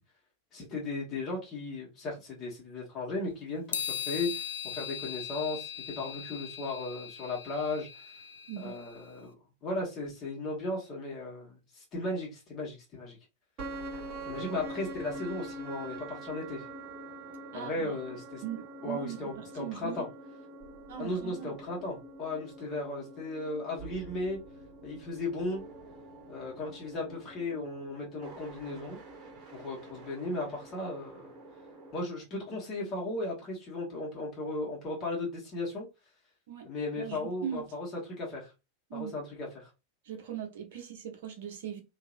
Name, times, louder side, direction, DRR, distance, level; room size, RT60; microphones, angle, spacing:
voice 1, 0.5-8.1 8.6-9.3 9.6-13.2 14.2-16.6 17.5-18.4 18.8-20.0 21.0-24.4 24.8-25.6 26.3-29.0 29.5-31.3 31.9-35.9 36.6-37.9 38.2-38.5 38.9-39.7, left 2 dB, 30° left, 1.2 m, -36 dB
sound 1, 3.7-9.0, left 9 dB, 65° left, 0.3 m, -39 dB
sound 2, 13.6-31.9, right 2 dB, 35° right, 1.2 m, -45 dB
voice 2, 17.5-17.9 18.4-20.1 20.9-21.6 21.8-21.9 36.5-36.7 37.0-37.7 38.9-39.1 40.0-41.8, right 9 dB, 55° right, 0.8 m, -40 dB
2.9 x 2.6 x 2.5 m
figure-of-eight pair, 90°, 0 cm